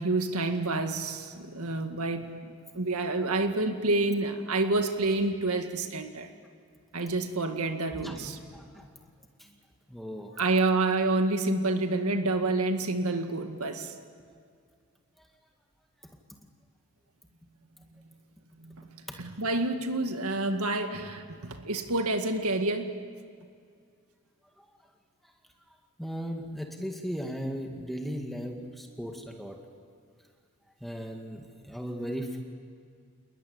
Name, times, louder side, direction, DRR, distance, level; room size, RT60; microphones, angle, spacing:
voice 1, 0.0-6.3 6.9-8.4 10.4-13.9 18.6-18.8 19.2-23.0, right 2 dB, 85° right, 6 dB, 2.0 m, -28 dB
voice 2, 7.9-8.9 9.4-9.5 9.9-10.4 24.6-24.7 26.0-29.6 30.8-32.4, equal, ahead, 2 dB, 2.0 m, -37 dB
28.5 x 21.0 x 9.6 m, 2.2 s
head